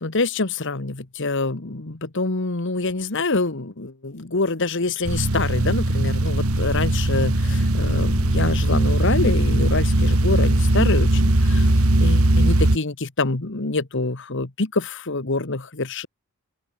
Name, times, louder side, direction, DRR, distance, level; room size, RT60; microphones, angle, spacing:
voice 1, 0.0-11.7 12.0-16.1, left 3 dB, 60° left, 1.5 m, -26 dB
sound 1, 5.0-12.8, right 1 dB, 80° right, 2.1 m, -19 dB
open air
head